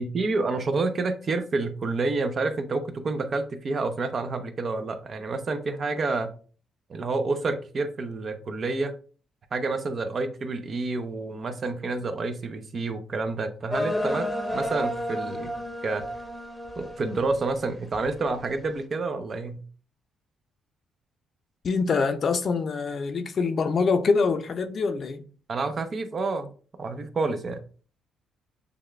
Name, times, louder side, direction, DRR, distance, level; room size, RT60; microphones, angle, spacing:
voice 1, 0.0-6.3 6.9-9.0 9.5-14.3 14.5-15.5 15.8-16.1 16.8-19.6 25.5-26.5 26.8-27.6, right 3 dB, 45° right, 0.7 m, -29 dB
sound 1, 13.7-17.5 17.9-18.4, equal, 5° left, 0.9 m, -31 dB
voice 2, 21.6-25.2, left 4 dB, 50° left, 0.6 m, -25 dB
6.7 x 2.4 x 3.2 m
cardioid pair, 90°, 0 cm